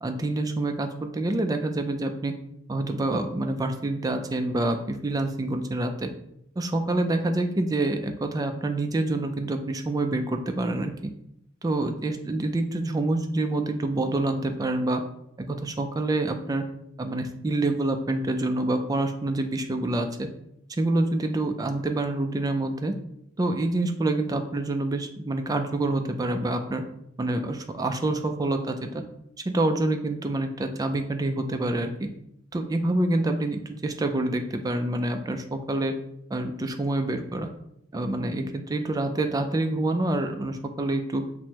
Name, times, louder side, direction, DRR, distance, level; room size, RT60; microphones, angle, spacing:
voice 1, 0.0-2.3 2.7-6.1 6.6-11.1 11.6-15.0 15.4-16.6 17.0-20.3 20.7-22.9 23.4-26.8 27.2-29.0 29.5-32.1 32.5-35.9 36.3-37.5 37.9-41.2, right 2 dB, 20° right, 6 dB, 0.3 m, -27 dB
6.0 x 2.1 x 2.8 m, 0.74 s
head